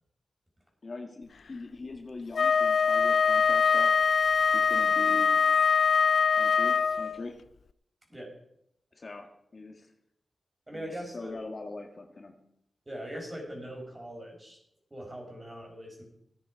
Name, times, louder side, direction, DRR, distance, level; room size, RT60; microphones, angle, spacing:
voice 1, 0.8-3.9 4.5-5.5 6.4-7.4 8.9-9.9 10.7-12.4, left 3 dB, 45° left, 3 dB, 1.7 m, -41 dB
Wind instrument woodwind instrument, 2.3-7.2, left 6 dB, 65° left, 0.3 m, -23 dB
voice 2, 10.7-11.3 12.8-14.6 14.9-16.0, equal, 20° right, 0 dB, 5.0 m, -41 dB
14.5 x 9.5 x 4.8 m, 0.74 s
wide cardioid pair, 80°, 0 cm